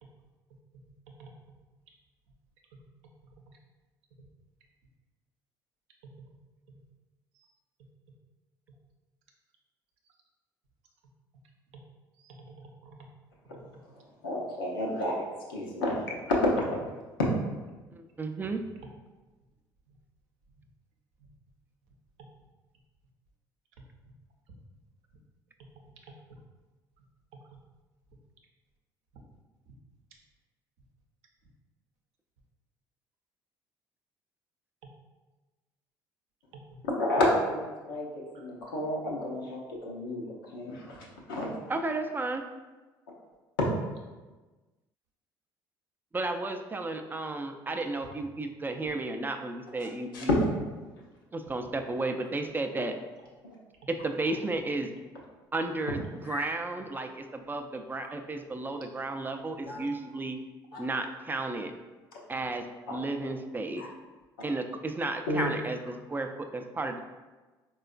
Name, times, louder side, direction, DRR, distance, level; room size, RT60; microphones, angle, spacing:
voice 1, 1.1-1.6 6.0-6.3 11.7-11.8 12.2-13.1 13.6-13.7 22.2-22.3 25.6-26.1 27.3-27.6 34.8-34.9 36.5-36.8 38.3-38.4, right 3 dB, 70° right, 1 dB, 0.6 m, -51 dB
voice 2, 14.2-15.2 15.5-16.0 16.3-16.8 17.2-17.3 36.8-38.1 38.4-40.2 40.5-41.5 50.1-50.2 56.2-56.5 59.7-59.8 60.7-60.8 63.8-63.9 65.3-65.4, left 1 dB, 85° left, -3 dB, 0.6 m, -30 dB
voice 3, 17.9-18.6 41.7-42.4 46.1-50.4 51.3-52.9 53.9-54.9 55.5-60.4 60.8-61.7 62.3-63.9 64.4-67.0, right 2 dB, 15° right, 6 dB, 0.3 m, -33 dB
4.1 x 2.3 x 2.4 m, 1.2 s
hypercardioid pair, 60°, 11 cm